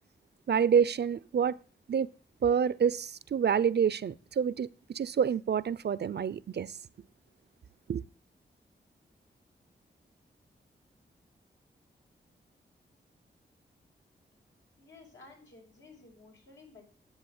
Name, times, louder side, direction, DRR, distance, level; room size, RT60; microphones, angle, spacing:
voice 1, 0.5-1.6 1.9-2.1 2.4-6.7 7.9-8.0, right 7 dB, 60° right, 0.6 m, -27 dB
voice 2, 14.8-16.8, left 3 dB, 75° left, 6.1 m, -54 dB
10.5 x 7.9 x 8.1 m
cardioid pair, 40°, 19 cm